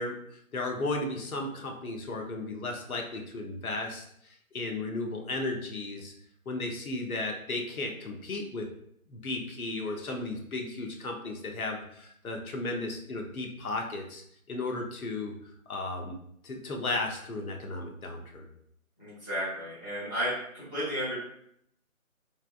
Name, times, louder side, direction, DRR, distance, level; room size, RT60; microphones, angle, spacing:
voice 1, 0.0-6.1 6.5-8.7 9.1-14.2 14.5-15.3 15.7-16.2 16.4-18.5, left 2 dB, 80° left, 2 dB, 0.8 m, -35 dB
voice 2, 19.0-21.1, equal, 15° left, -14 dB, 0.9 m, -33 dB
3.3 x 2.5 x 2.3 m, 0.70 s
figure-of-eight pair, 165°, 43 cm